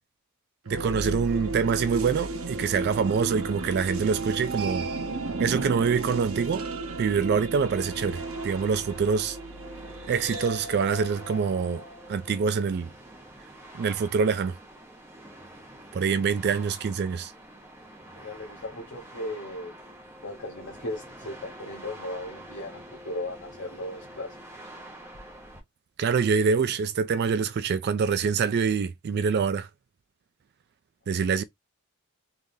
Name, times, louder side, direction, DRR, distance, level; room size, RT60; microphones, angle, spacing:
voice 1, 0.7-4.9 5.4-6.6 7.0-9.4 10.1-11.8 12.1-12.9 13.7-14.6 15.9-17.3 26.0-29.7 31.1-31.4, right 6 dB, 50° right, 0.3 m, -25 dB
sound 1, 0.7-12.5, right 3 dB, 70° right, 0.9 m, -34 dB
sound 2, 7.5-25.6, right 1 dB, 10° right, 1.0 m, -46 dB
voice 2, 18.2-19.7 20.2-24.4, left 1 dB, 55° left, 0.9 m, -37 dB
3.6 x 3.2 x 2.6 m
head